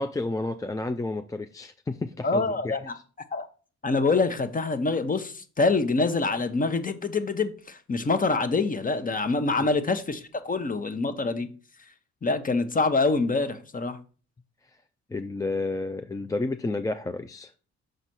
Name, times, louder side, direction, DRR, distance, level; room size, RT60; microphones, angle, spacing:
voice 1, 0.0-3.0 15.1-17.5, left 2 dB, 10° left, 0.4 m, -31 dB
voice 2, 2.2-2.9 3.3-3.5 3.8-11.5 12.2-14.0, left 3 dB, 25° left, 1.0 m, -25 dB
6.5 x 4.1 x 6.0 m
cardioid pair, 90°, 30 cm